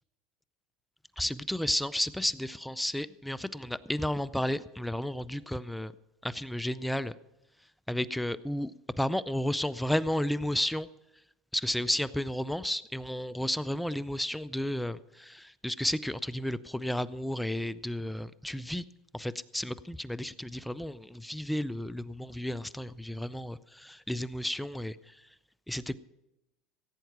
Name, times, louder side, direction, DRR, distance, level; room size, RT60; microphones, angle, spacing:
voice 1, 1.2-5.9 6.2-7.1 7.6-8.7 9.0-10.9 11.5-18.8 19.1-25.4 25.7-26.0, left 1 dB, 5° left, 16 dB, 0.5 m, -32 dB
16.0 x 9.2 x 5.9 m, 0.91 s
supercardioid pair, 100°, 0 cm